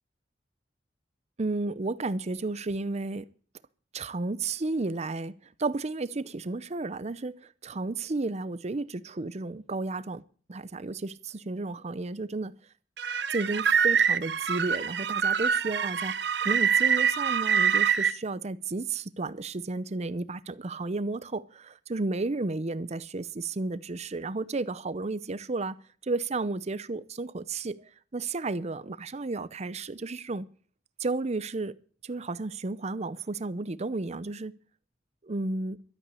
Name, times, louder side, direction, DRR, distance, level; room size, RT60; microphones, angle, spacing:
voice 1, 1.4-3.3 3.9-5.3 5.6-10.2 10.5-12.5 13.3-25.8 26.0-27.8 28.1-30.5 31.0-31.7 32.0-34.5 35.2-35.8, right 3 dB, 40° right, 0.6 m, -32 dB
sound 1, 13.0-18.1, right 7 dB, 70° right, 0.8 m, -25 dB
12.5 x 8.6 x 8.3 m
head